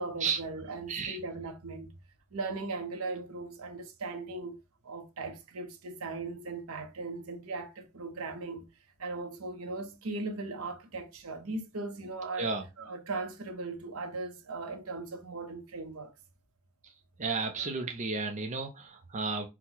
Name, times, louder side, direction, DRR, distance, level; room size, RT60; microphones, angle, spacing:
voice 1, 0.0-1.9 2.3-4.6 4.8-8.7 9.0-16.1 17.6-17.7, right 3 dB, 75° right, 0.8 m, -38 dB
voice 2, 17.2-19.5, right 4 dB, 35° right, 0.6 m, -32 dB
4.4 x 2.2 x 3.9 m
head